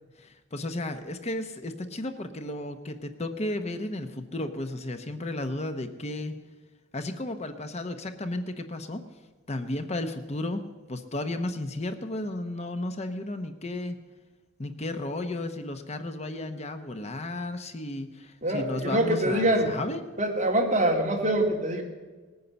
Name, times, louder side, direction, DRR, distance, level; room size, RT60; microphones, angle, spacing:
voice 1, 0.2-6.4 6.9-9.0 9.5-14.0 14.6-20.0, left 1 dB, 35° left, 8 dB, 0.9 m, -33 dB
voice 2, 18.4-19.7 20.2-21.8, right 1 dB, 40° right, 0 dB, 2.5 m, -24 dB
19.5 x 9.4 x 6.9 m, 1.3 s
head